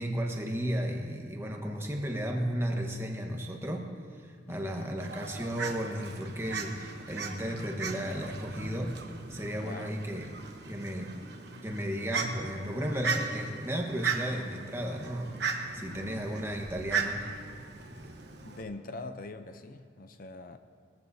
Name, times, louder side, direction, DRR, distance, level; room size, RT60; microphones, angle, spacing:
voice 1, 0.0-9.0 9.3-10.3 10.7-11.1 11.6-17.2, equal, 15° right, 1 dB, 1.3 m, -34 dB
voice 2, 4.5-5.0 9.6-9.9 15.8-16.2 18.4-20.6, left 2 dB, 50° left, 9 dB, 0.6 m, -43 dB
Fowl, 5.0-18.6, right 5 dB, 60° right, 1.2 m, -37 dB
21.0 x 15.0 x 2.8 m, 2.2 s
head